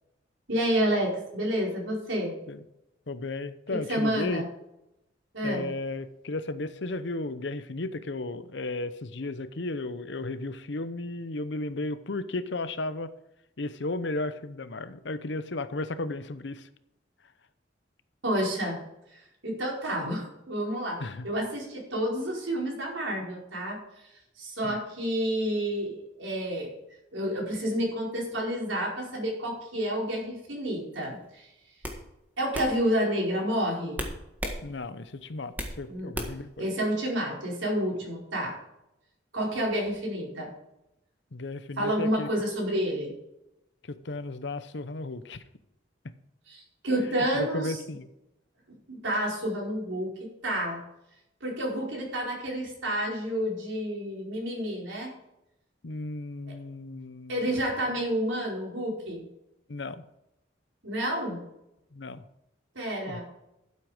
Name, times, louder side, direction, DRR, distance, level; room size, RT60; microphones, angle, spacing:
voice 1, 0.5-2.3 3.7-4.5 5.3-5.7 18.2-18.8 19.1-23.8 24.4-26.7 27.1-31.5 32.4-34.0 35.9-36.1 36.6-38.6 39.3-40.5 41.8-43.1 46.5-47.8 48.9-50.8 51.4-55.1 56.5-56.6 57.3-59.3 60.8-61.4 62.7-63.2, equal, 90° right, -2 dB, 4.7 m, -29 dB
voice 2, 3.1-4.4 5.4-13.1 13.6-16.7 21.0-21.3 24.6-24.8 34.6-36.7 41.3-42.3 43.9-45.5 47.2-48.1 55.8-57.5 59.7-60.0 61.9-62.2 63.1-63.2, left 2 dB, 70° left, 12 dB, 0.8 m, -34 dB
sound 1, 31.0-31.3 31.8-32.0 32.5-32.7 34.0-34.6 35.0-35.8 36.1-36.5, equal, 10° right, 1.6 m, -34 dB
12.5 x 7.9 x 5.0 m, 0.88 s
head